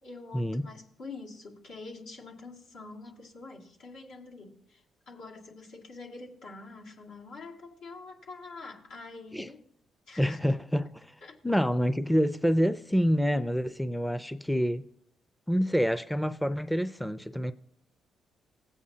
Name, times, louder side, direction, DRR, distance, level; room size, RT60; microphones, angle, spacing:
voice 1, 0.0-9.6 10.1-10.4 11.2-11.4, left 3 dB, 85° left, 2.3 m, -46 dB
voice 2, 10.2-11.1 11.4-14.8 15.5-17.5, equal, 5° left, 0.4 m, -27 dB
17.0 x 8.5 x 2.8 m
cardioid pair, 90°, 0 cm